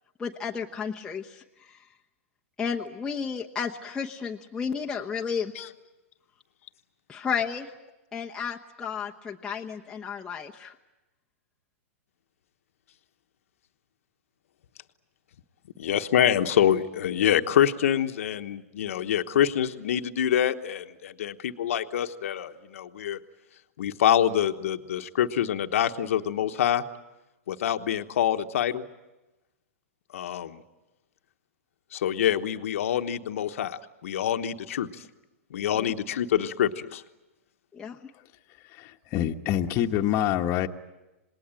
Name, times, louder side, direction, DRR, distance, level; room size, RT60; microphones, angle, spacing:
voice 1, 0.2-1.8 2.6-5.5 7.1-7.7 8.1-10.7 35.8-35.9 37.7-38.0, left 6 dB, 10° left, -2 dB, 1.0 m, -32 dB
voice 2, 15.8-23.2 23.8-26.8 27.5-28.8 30.1-30.6 31.9-35.0 35.5-37.0, left 10 dB, 70° left, 8 dB, 1.2 m, -26 dB
voice 3, 38.6-40.7, left 11 dB, 35° left, 3 dB, 1.3 m, -27 dB
27.0 x 20.0 x 9.0 m, 1.0 s
hypercardioid pair, 130°, 8 cm